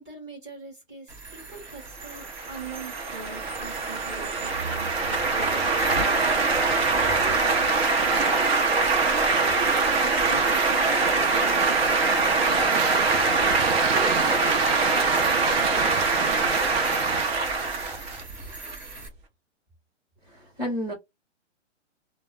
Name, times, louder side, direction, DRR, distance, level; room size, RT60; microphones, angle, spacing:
voice 1, 0.0-8.6 9.1-9.9 10.2-13.1 13.7-16.1, right 3 dB, 20° right, 1.1 m, -42 dB
sound 1, 1.1-19.1, right 3 dB, 40° right, 1.2 m, -42 dB
sound 2, 2.1-18.7, right 3 dB, 55° right, 0.8 m, -23 dB
Purr, 12.4-17.3, right 8 dB, 85° right, 0.6 m, -34 dB
voice 2, 20.2-20.9, equal, 5° right, 0.7 m, -31 dB
2.2 x 2.0 x 3.2 m
hypercardioid pair, 175°, 37 cm